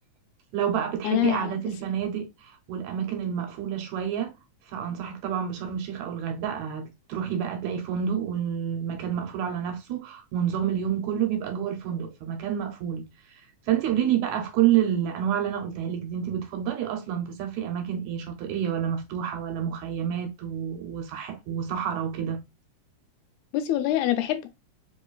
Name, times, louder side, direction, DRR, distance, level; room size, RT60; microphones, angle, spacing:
voice 1, 0.5-4.3 4.7-13.0 13.7-22.4, right 9 dB, 75° right, 2.0 m, -28 dB
voice 2, 1.0-1.6 23.5-24.5, left 13 dB, 85° left, 2.0 m, -25 dB
4.4 x 3.0 x 2.3 m
omnidirectional pair, 3.4 m